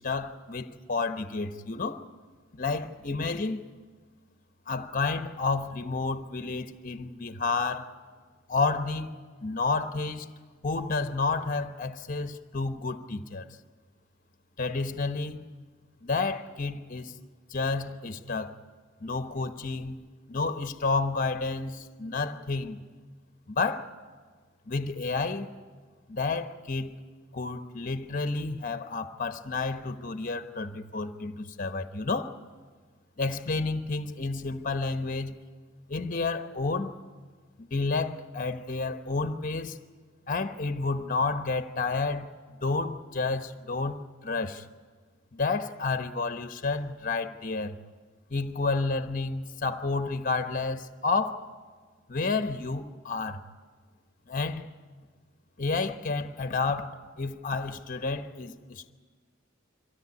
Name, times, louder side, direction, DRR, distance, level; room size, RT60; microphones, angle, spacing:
voice 1, 0.0-2.0 2.6-3.6 4.7-7.9 8.5-10.3 10.6-13.5 14.6-15.5 16.0-17.1 17.5-18.5 19.0-20.0 20.3-22.8 23.5-23.9 24.7-25.5 26.1-26.9 27.3-32.3 33.2-35.4 35.9-36.9 37.6-39.8 40.3-42.3 42.6-44.7 45.3-47.8 48.3-51.4 52.1-53.4 54.3-54.7 55.6-58.9, left 3 dB, 45° left, 1.1 m, -30 dB
23.5 x 16.5 x 9.6 m
head